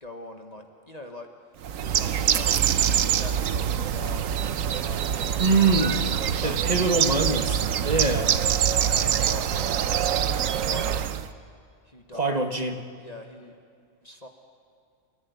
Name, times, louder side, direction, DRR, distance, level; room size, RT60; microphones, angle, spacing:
voice 1, 0.0-1.3 1.8-2.5 3.0-6.8 7.7-8.0 8.8-9.9 10.1-11.1 11.8-12.4 13.0-13.6 14.0-14.3, left 2 dB, 30° left, 3 dB, 1.4 m, -43 dB
Bird, 1.6-11.3, right 9 dB, 75° right, 1.1 m, -25 dB
voice 2, 5.4-6.0 6.4-8.3 12.1-12.7, right 3 dB, 30° right, 5 dB, 1.4 m, -24 dB
29.0 x 14.0 x 9.5 m, 2.3 s
omnidirectional pair, 1.4 m